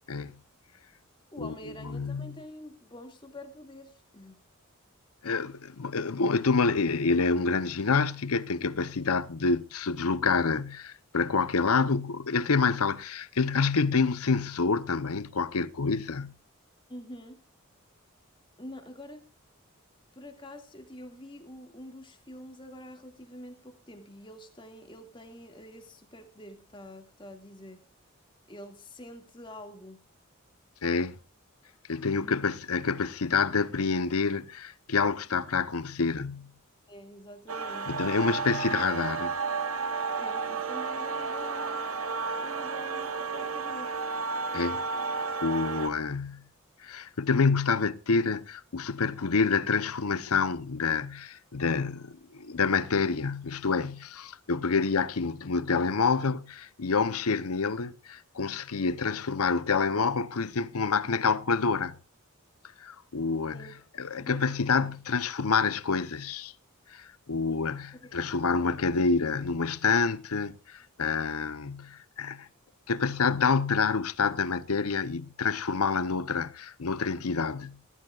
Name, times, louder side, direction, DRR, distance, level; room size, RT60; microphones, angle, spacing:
voice 1, 1.3-4.4 16.9-17.4 18.6-19.3 20.1-27.8 28.5-30.0 32.1-32.5 36.9-37.9 40.2-41.9 42.4-43.9 63.5-63.7 64.2-64.4 67.5-67.7 67.9-68.2 68.6-68.8, left 1 dB, 20° left, 2.2 m, -46 dB
voice 2, 1.8-2.4 5.2-16.3 30.8-31.2 31.9-36.5 37.9-39.3 44.5-44.8 45.4-46.4 46.8-62.0 62.8-63.7 64.0-66.5 66.9-72.5 72.9-77.8, left 4 dB, 85° left, 0.8 m, -27 dB
sound 1, 37.5-45.9, right 4 dB, 75° right, 1.2 m, -32 dB
19.5 x 14.0 x 2.4 m
head